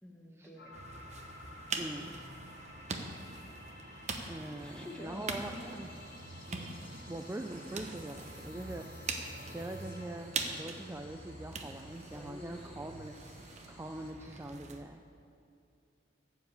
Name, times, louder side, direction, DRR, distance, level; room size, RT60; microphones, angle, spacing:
voice 1, 0.0-0.8 1.7-2.2 4.5-5.8 6.5-7.2 8.4-8.7 12.1-12.8, left 1 dB, 5° left, 0 dB, 1.1 m, -51 dB
sound 1, 0.6-10.3, left 2 dB, 50° left, 1.9 m, -53 dB
sound 2, 0.7-14.8, right 4 dB, 35° right, 0.8 m, -43 dB
voice 2, 1.8-2.2 4.3-5.9 7.1-15.0, right 1 dB, 15° right, 5 dB, 0.3 m, -43 dB
sound 3, 4.6-14.1, left 2 dB, 65° left, 1.9 m, -58 dB
12.5 x 4.9 x 8.0 m, 2.6 s
head